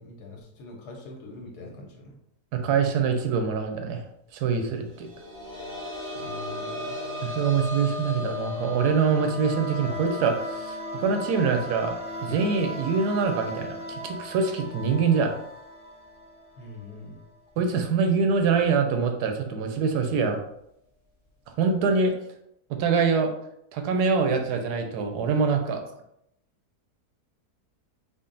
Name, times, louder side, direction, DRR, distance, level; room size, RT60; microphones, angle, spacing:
voice 1, 0.0-2.2 6.1-7.0 16.6-17.2, left 2 dB, 85° left, 1 dB, 1.4 m, -43 dB
voice 2, 2.5-4.0 4.3-5.1 7.2-11.9 12.2-15.3 17.6-20.4 21.6-22.1 22.7-23.3 23.7-25.8, right 5 dB, 85° right, 5 dB, 1.2 m, -24 dB
sound 1, 4.9-16.4 16.7-16.8 18.4-18.5, left 3 dB, 45° right, 0.3 m, -38 dB
sound 2, 8.3-16.9, equal, 5° right, 0.7 m, -39 dB
3.8 x 2.1 x 3.8 m, 0.77 s
omnidirectional pair, 1.7 m